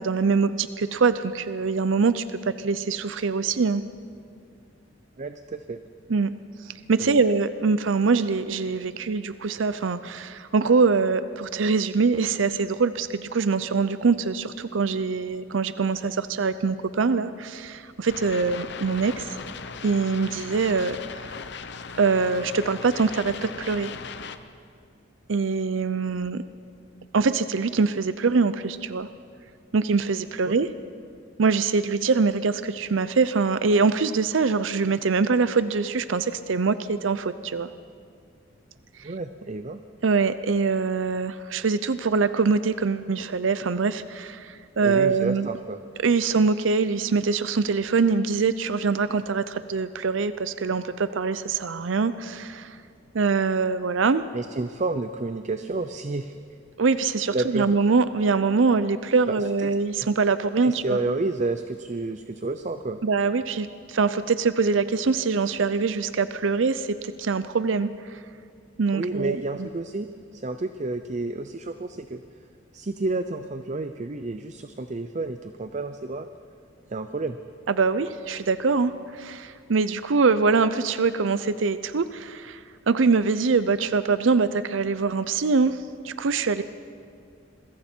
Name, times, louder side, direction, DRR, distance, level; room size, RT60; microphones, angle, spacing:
voice 1, 0.0-2.2 2.6-3.8 6.1-6.3 6.7-19.4 19.8-21.2 22.0-23.9 25.3-26.4 27.1-29.1 29.7-30.7 31.4-37.7 40.0-45.5 46.0-52.8 53.1-54.2 56.8-61.0 63.0-68.2 68.8-69.7 77.7-85.8 86.0-86.6, right 4 dB, 75° right, 13 dB, 0.6 m, -23 dB
voice 2, 5.2-5.8 7.0-7.2 30.4-30.5 39.0-39.8 44.8-45.8 54.3-56.4 57.3-57.8 59.2-59.7 60.0-60.1 60.6-63.0 68.9-72.2 72.7-76.3 76.9-77.4, right 2 dB, 40° right, 9 dB, 0.6 m, -30 dB
sound 1, 18.1-24.4, left 5 dB, 60° left, 0.9 m, -38 dB
27.0 x 22.0 x 4.5 m, 2.3 s
head